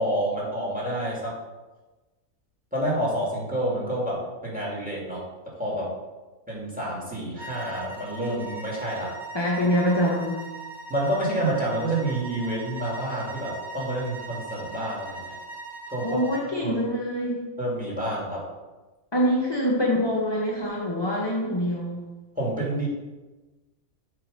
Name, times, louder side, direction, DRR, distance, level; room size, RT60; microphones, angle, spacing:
voice 1, 0.0-1.3 2.7-5.2 5.6-5.9 6.5-9.1 10.9-15.4 15.9-16.2 16.6-16.9 17.6-18.4 22.4-22.9, right 1 dB, 5° right, -5 dB, 2.2 m, -28 dB
sound 1, 7.4-16.5, right 3 dB, 25° right, 0.7 m, -40 dB
voice 2, 9.3-10.3 16.0-17.4 19.1-22.0, equal, 25° left, -3 dB, 0.7 m, -25 dB
7.4 x 3.9 x 5.1 m, 1.2 s
omnidirectional pair, 1.5 m